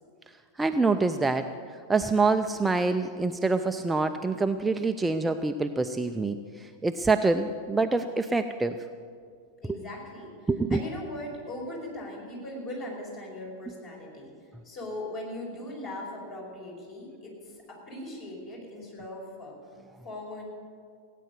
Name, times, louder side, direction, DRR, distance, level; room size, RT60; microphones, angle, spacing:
voice 1, 0.6-1.5 1.9-8.8 9.7-9.8 10.5-10.8, right 3 dB, 10° right, 7 dB, 0.5 m, -26 dB
voice 2, 9.6-14.3 14.6-19.6 20.0-20.4, left 1 dB, 40° left, -2 dB, 5.0 m, -39 dB
17.0 x 9.3 x 7.8 m, 2.2 s
figure-of-eight pair, 90°, 0 cm